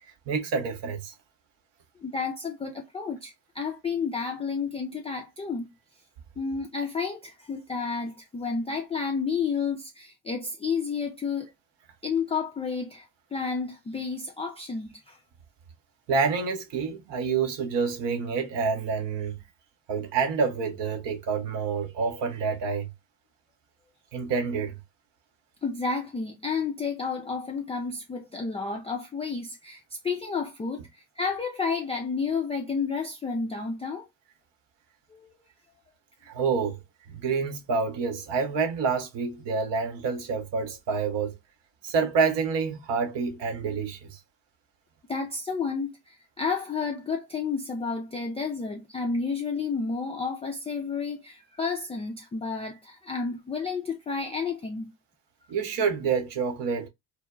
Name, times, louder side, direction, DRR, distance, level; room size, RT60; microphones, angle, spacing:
voice 1, 0.3-1.1 16.1-19.4 19.9-22.9 24.1-24.8 36.3-36.8 37.1-41.3 41.8-44.2 55.5-56.9, right 5 dB, 60° right, 0.9 m, -28 dB
voice 2, 2.0-5.7 6.4-11.5 12.0-15.2 25.6-34.1 35.1-35.3 45.1-54.9, left 5 dB, 15° left, 0.3 m, -31 dB
2.1 x 2.0 x 3.5 m
figure-of-eight pair, 45°, 50 cm